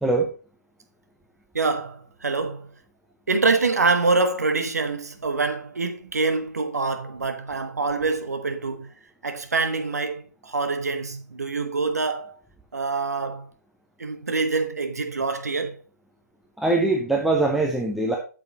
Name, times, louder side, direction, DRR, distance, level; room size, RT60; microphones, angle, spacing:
voice 1, 1.5-2.7 3.3-8.9 9.2-12.3 12.7-13.5 14.0-15.8, right 3 dB, 65° right, 1.4 m, -25 dB
voice 2, 16.6-18.1, right 2 dB, ahead, 0.7 m, -22 dB
8.3 x 6.7 x 4.1 m
figure-of-eight pair, 130°, 9 cm